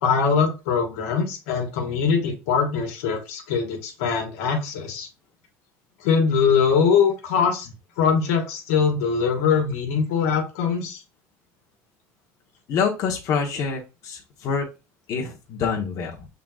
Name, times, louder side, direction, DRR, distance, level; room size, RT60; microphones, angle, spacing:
voice 1, 0.0-5.1 6.0-7.7 8.0-11.0, left 6 dB, 80° left, 2 dB, 1.5 m, -22 dB
voice 2, 12.7-14.6 15.1-16.3, left 6 dB, 55° left, -1 dB, 1.2 m, -26 dB
5.7 x 3.9 x 2.4 m, 0.28 s
supercardioid pair, 90°, 7 cm